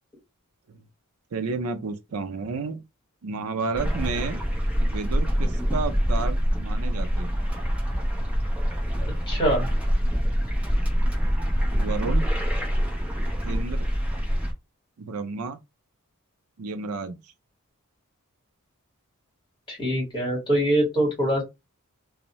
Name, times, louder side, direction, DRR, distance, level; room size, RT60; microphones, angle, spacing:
voice 1, 1.3-2.8 3.2-4.4 4.8-7.4 11.7-12.3 13.4-13.9 15.0-15.6 16.6-17.2, right 4 dB, 80° right, 0.5 m, -31 dB
sound 1, 3.7-14.5, equal, 5° right, 0.6 m, -25 dB
voice 2, 9.0-9.7 19.7-21.4, right 1 dB, 20° left, 1.5 m, -24 dB
2.6 x 2.0 x 3.0 m
head